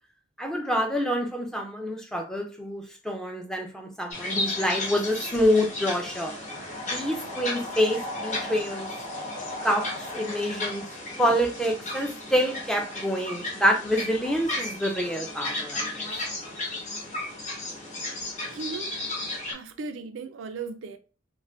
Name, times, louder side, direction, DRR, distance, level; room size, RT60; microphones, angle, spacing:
voice 1, 0.4-6.3 6.9-8.9 9.6-10.8 11.2-16.1, equal, 5° left, 0.4 m, -27 dB
sound 1, 4.1-19.5, left 2 dB, 40° left, 0.9 m, -34 dB
voice 2, 18.5-19.0 19.5-21.0, right 4 dB, 85° right, 0.4 m, -36 dB
2.5 x 2.1 x 3.3 m
head